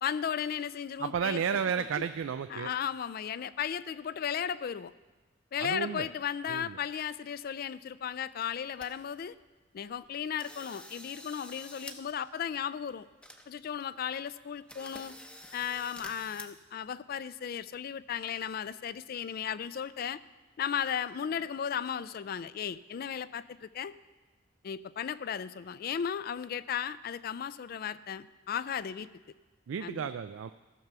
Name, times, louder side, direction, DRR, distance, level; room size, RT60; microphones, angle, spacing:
voice 1, 0.0-1.9 2.5-4.9 5.5-9.4 9.7-13.1 13.5-15.1 15.5-20.2 20.6-23.9 24.6-29.1 29.8-30.1, left 8 dB, 50° left, 16 dB, 0.3 m, -35 dB
voice 2, 1.0-2.7 5.6-6.1 6.5-6.8 29.7-30.5, right 7 dB, 80° right, 11 dB, 0.4 m, -32 dB
sound 1, 8.1-8.2 8.4-8.9 9.3-9.4 9.9-10.1 10.4-12.0 12.3-12.4 12.9-13.0 13.2-13.8 14.2-14.3 14.7-16.4, left 1 dB, 5° left, 0.7 m, -48 dB
14.0 x 6.0 x 6.7 m, 1.2 s
head